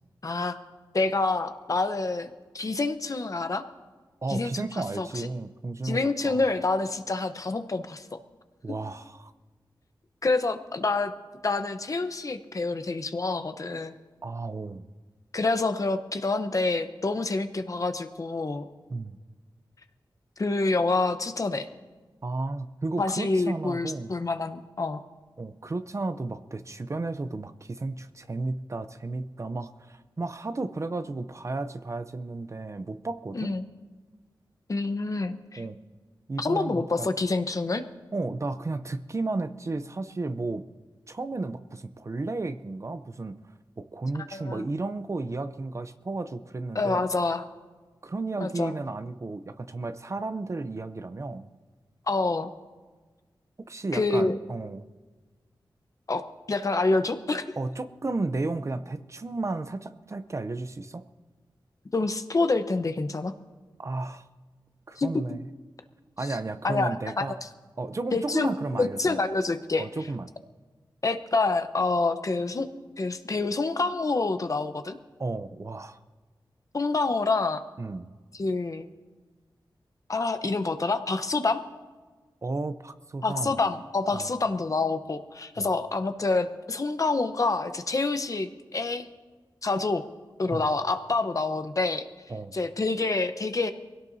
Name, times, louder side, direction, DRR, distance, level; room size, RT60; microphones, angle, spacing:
voice 1, 0.2-0.6 0.9-3.6 4.3-5.3 5.8-8.2 10.2-11.1 11.4-13.9 15.3-18.7 20.4-21.7 23.0-25.0 33.3-33.6 34.7-35.6 36.4-37.8 44.3-44.6 46.7-47.4 48.4-48.7 52.1-52.5 53.9-54.4 56.1-57.6 61.9-63.3 65.0-65.1 66.6-67.4 68.1-69.9 71.0-72.7 73.0-75.0 76.7-77.6 78.4-78.9 80.1-81.6 83.2-89.1 89.6-90.0 90.4-92.1 92.5-93.7, left 3 dB, 45° left, 9 dB, 0.9 m, -27 dB
voice 2, 4.2-6.5 8.6-9.3 14.2-14.9 18.9-19.2 22.2-24.1 25.4-33.5 35.6-35.8 36.3-37.1 38.1-40.7 41.1-43.4 43.8-47.0 48.0-51.5 53.6-54.9 57.6-61.0 63.8-64.3 64.9-65.4 66.2-67.4 67.8-69.2 69.8-70.3 75.2-76.0 77.8-78.1 82.4-83.5 84.1-84.3 85.6-85.7 90.5-90.7 92.3-92.5, right 3 dB, 35° right, 11 dB, 0.6 m, -33 dB
23.5 x 17.0 x 2.7 m, 1.3 s
wide cardioid pair, 110°, 8 cm